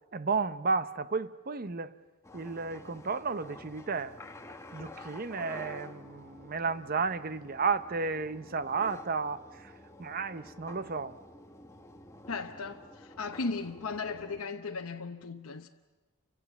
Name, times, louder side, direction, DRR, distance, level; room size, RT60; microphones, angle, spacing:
voice 1, 0.1-1.9 2.3-4.2 4.7-9.7 10.0-11.2, right 4 dB, 40° right, 0.8 m, -33 dB
sound 1, 2.2-14.4, left 1 dB, 15° left, 1.3 m, -50 dB
voice 2, 12.3-15.7, left 4 dB, 75° left, 0.9 m, -36 dB
29.5 x 25.5 x 7.2 m
head